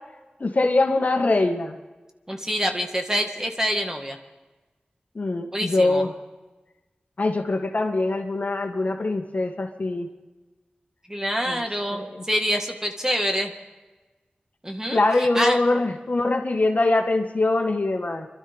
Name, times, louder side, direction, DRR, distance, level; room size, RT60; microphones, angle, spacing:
voice 1, 0.4-1.8 5.1-6.1 7.2-10.1 11.5-11.6 11.9-12.2 14.9-18.3, left 2 dB, 55° left, 3 dB, 1.7 m, -23 dB
voice 2, 2.3-4.2 5.5-6.0 8.8-8.9 11.1-13.5 14.6-15.6, equal, 15° right, 3 dB, 1.7 m, -26 dB
26.0 x 12.5 x 3.6 m, 1.2 s
wide cardioid pair, 75°, 3 cm